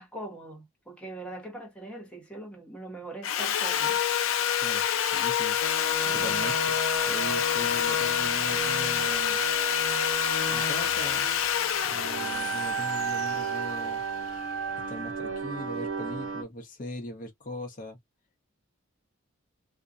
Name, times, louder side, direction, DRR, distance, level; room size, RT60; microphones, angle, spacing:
voice 1, 0.0-4.0 6.0-6.5, right 1 dB, 5° left, 0.7 m, -42 dB
Sawing, 3.2-14.3, left 9 dB, 70° left, 0.4 m, -27 dB
voice 2, 5.1-5.6 6.1-6.8 7.1-9.4 10.5-11.3 11.8-14.0 14.9-18.0, left 1 dB, 40° left, 0.7 m, -40 dB
sound 1, 5.6-16.4, right 5 dB, 80° right, 0.6 m, -34 dB
2.5 x 2.1 x 2.4 m
head